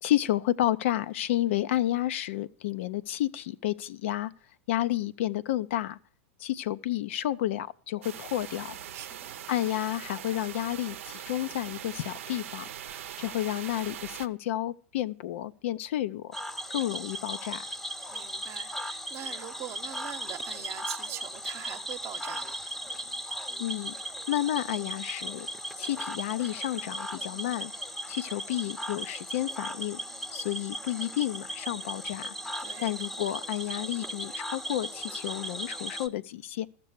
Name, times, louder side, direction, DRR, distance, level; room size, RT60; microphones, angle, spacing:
voice 1, 0.0-4.3 4.7-6.0 6.4-8.8 9.5-16.3 16.7-17.6 23.6-24.0 24.3-25.5 25.8-27.7 28.1-30.0 30.3-32.3 32.8-36.7, left 13 dB, 65° left, 0.5 m, -31 dB
sound 1, 8.0-14.3, right 10 dB, 70° right, 0.6 m, -41 dB
voice 2, 8.9-9.4 16.6-16.7 18.1-22.6 32.6-32.9, right 10 dB, 40° right, 0.9 m, -42 dB
Cricket / Frog, 16.3-36.1, right 1 dB, 5° left, 0.8 m, -37 dB
13.0 x 6.8 x 6.6 m
hypercardioid pair, 95°, 7 cm